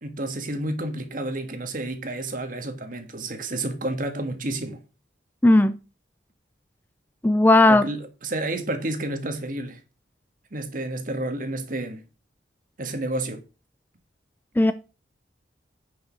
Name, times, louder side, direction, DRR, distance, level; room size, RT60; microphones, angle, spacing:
voice 1, 0.0-4.8 7.7-9.8 10.5-12.0 12.8-13.4, right 2 dB, 45° right, 1.7 m, -30 dB
voice 2, 5.4-5.8 7.2-7.9 14.6-14.7, left 2 dB, 10° left, 0.4 m, -16 dB
10.0 x 5.4 x 5.3 m
head